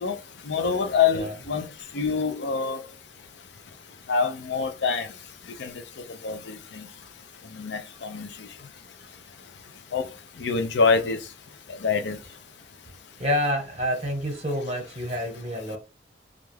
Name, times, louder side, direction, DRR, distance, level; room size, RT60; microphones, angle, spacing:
voice 1, 0.5-1.7 1.9-2.8 4.1-5.1 5.6-5.7 6.2-6.9 7.5-8.5 9.9-10.1 10.4-11.2 11.7-12.2, left 5 dB, 85° left, 0.5 m, -25 dB
voice 2, 13.2-15.8, equal, 35° right, 1.0 m, -28 dB
2.5 x 2.2 x 3.2 m
head